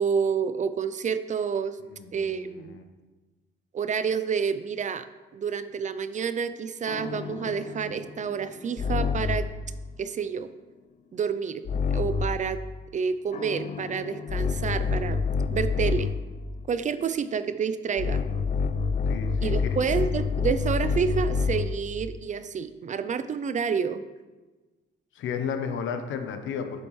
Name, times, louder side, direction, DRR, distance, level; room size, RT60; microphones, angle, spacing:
voice 1, 0.0-1.8 2.1-2.8 3.7-5.1 5.3-9.5 10.0-10.5 11.1-11.6 11.9-12.6 12.9-15.2 15.5-16.1 16.7-18.2 19.4-24.0, right 6 dB, 40° right, 12 dB, 0.4 m, -29 dB
voice 2, 1.8-2.8 19.1-19.5 25.1-26.9, left 6 dB, 75° left, 7 dB, 0.9 m, -33 dB
sound 1, 6.9-9.6 11.6-12.5 13.3-16.3 18.0-21.8, left 5 dB, 40° left, 0.4 m, -28 dB
7.7 x 7.1 x 3.1 m, 1.2 s
cardioid pair, 90°, 20 cm